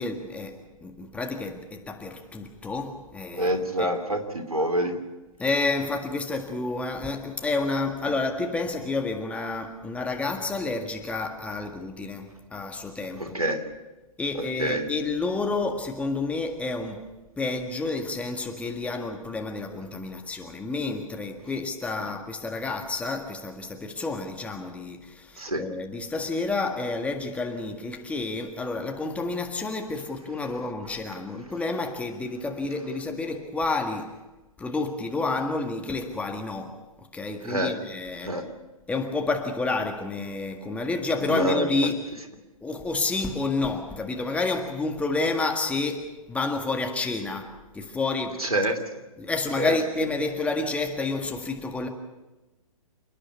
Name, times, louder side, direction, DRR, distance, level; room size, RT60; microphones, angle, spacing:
voice 1, 0.0-3.9 5.4-13.4 14.2-17.0 17.4-34.2 34.6-36.8 37.1-38.3 38.9-42.0 42.6-48.4 49.2-51.9, left 3 dB, 5° left, 1.8 m, -30 dB
voice 2, 3.4-4.9 13.2-13.6 14.3-14.8 22.0-22.1 25.4-25.6 37.5-37.7 38.2-38.4 41.2-41.7 48.4-49.0 49.6-49.7, right 1 dB, 85° right, 2.9 m, -27 dB
29.0 x 10.0 x 9.8 m
figure-of-eight pair, 115°, 18 cm